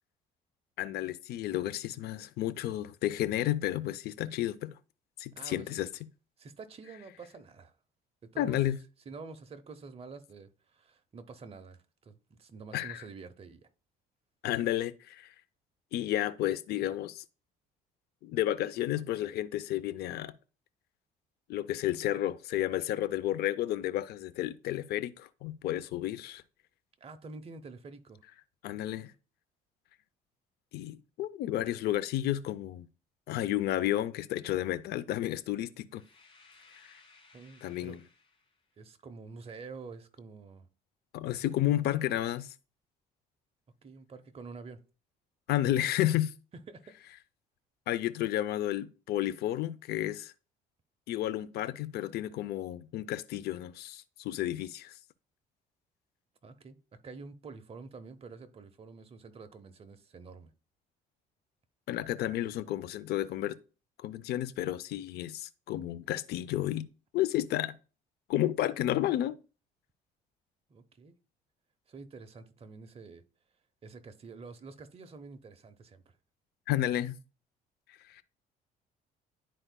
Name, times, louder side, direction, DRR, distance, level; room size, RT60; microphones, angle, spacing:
voice 1, 0.8-4.7 5.2-5.9 8.4-8.8 12.7-13.0 14.4-15.3 15.9-17.2 18.2-20.3 21.5-26.4 28.6-29.1 30.7-32.9 33.3-36.0 36.7-36.9 37.6-38.0 41.1-42.5 45.5-46.3 47.9-50.3 51.1-54.9 61.9-63.6 64.0-66.9 67.1-67.8 68.3-69.4 76.7-77.1 77.9-78.2, left 13 dB, 70° left, 0.5 m, -32 dB
voice 2, 5.4-5.8 6.4-7.8 8.2-8.6 9.1-13.7 27.0-28.2 37.3-38.0 38.8-40.7 43.8-44.8 46.7-47.0 56.4-56.8 57.0-60.5 70.7-71.1 71.9-73.2 73.8-76.2, right 4 dB, 35° right, 0.9 m, -48 dB
sound 1, 35.9-38.7, left 4 dB, 30° left, 2.1 m, -61 dB
11.0 x 4.5 x 2.2 m
cardioid pair, 110°, 17 cm